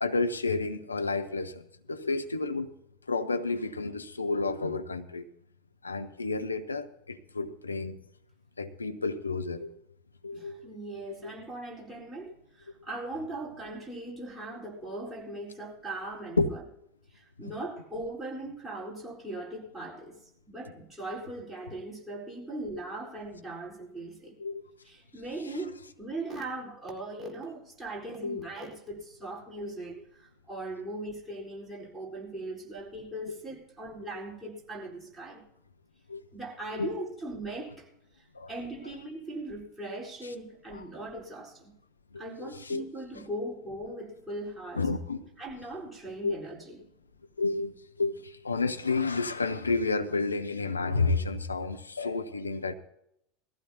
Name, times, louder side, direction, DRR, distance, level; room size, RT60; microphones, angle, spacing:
voice 1, 0.0-2.7 3.1-5.2 5.8-8.0 8.6-9.8 10.2-10.7 11.0-11.3 16.4-16.5 24.4-24.6 28.2-28.5 36.1-36.2 36.7-36.9 38.3-38.5 40.2-40.3 40.7-40.8 42.1-42.8 44.7-45.2 46.2-46.4 47.4-52.7, left 3 dB, 80° left, 0.8 m, -31 dB
voice 2, 10.3-16.6 17.1-20.2 20.5-24.4 24.8-35.4 36.3-37.9 38.2-41.7 42.2-44.9 45.4-46.8, right 2 dB, 5° right, 4.2 m, -39 dB
20.0 x 15.0 x 2.8 m
figure-of-eight pair, 80°, 0 cm